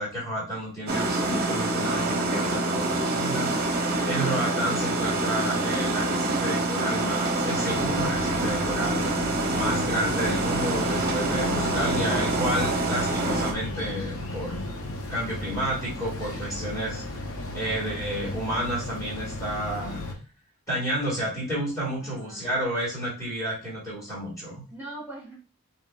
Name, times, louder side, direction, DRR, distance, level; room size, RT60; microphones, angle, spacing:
voice 1, 0.0-3.7 4.1-9.1 9.5-14.6 15.1-17.0 17.5-20.0 20.7-24.6, right 1 dB, 15° left, -6 dB, 1.8 m, -31 dB
sound 1, 0.9-13.5, right 2 dB, 40° right, 0.6 m, -26 dB
sound 2, 7.7-20.1, left 1 dB, 60° left, 0.7 m, -34 dB
voice 2, 22.0-22.5 24.7-25.3, right 1 dB, 10° right, -6 dB, 1.7 m, -42 dB
5.0 x 2.7 x 2.3 m, 0.35 s
head